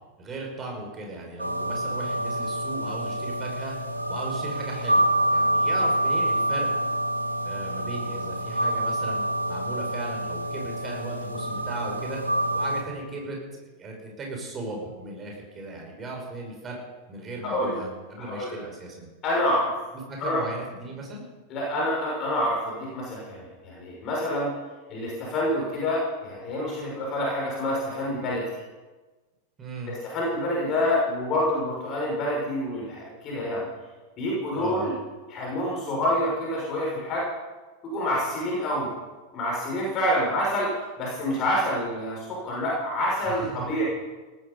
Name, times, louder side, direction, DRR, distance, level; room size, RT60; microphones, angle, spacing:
voice 1, 0.2-3.7 4.1-6.7 7.4-9.2 9.5-12.2 12.5-16.8 17.1-19.1 20.1-21.2 29.6-29.9 34.5-34.9 43.2-43.7, right 2 dB, 20° right, 0 dB, 5.7 m, -37 dB
sound 1, 1.4-12.8, right 1 dB, 85° right, 1.8 m, -27 dB
voice 2, 17.4-17.8 18.2-18.5 19.2-19.7 20.2-20.4 21.5-24.5 24.9-28.4 29.9-33.7 34.2-34.9 35.3-37.2 37.8-38.9 39.3-40.7 41.0-43.8, left 1 dB, 35° left, -3 dB, 6.1 m, -27 dB
18.5 x 14.0 x 5.5 m, 1.2 s
figure-of-eight pair, 90°, 0 cm